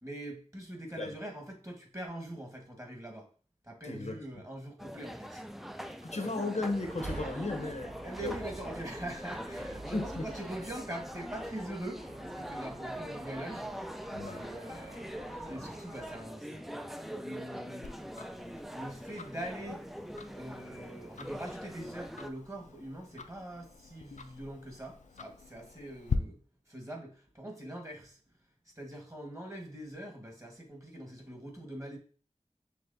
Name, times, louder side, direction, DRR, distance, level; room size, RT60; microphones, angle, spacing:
voice 1, 0.0-3.3 3.6-5.4 5.8-6.3 8.0-13.9 14.3-16.7 17.0-17.8 18.7-19.8 20.3-26.4 26.7-28.2 28.7-32.0, right 1 dB, 25° right, 1 dB, 1.3 m, -43 dB
voice 2, 3.8-4.1 6.0-8.3 9.9-10.3 14.1-14.4, left 2 dB, 65° left, 6 dB, 0.7 m, -35 dB
sound 1, 4.8-22.3, equal, ahead, 0.3 m, -43 dB
sound 2, 6.6-16.2, right 2 dB, 75° right, 1.0 m, -48 dB
Tick-tock, 17.8-26.2, left 6 dB, 85° left, 0.4 m, -44 dB
6.0 x 3.1 x 2.6 m, 0.41 s
wide cardioid pair, 50°, 12 cm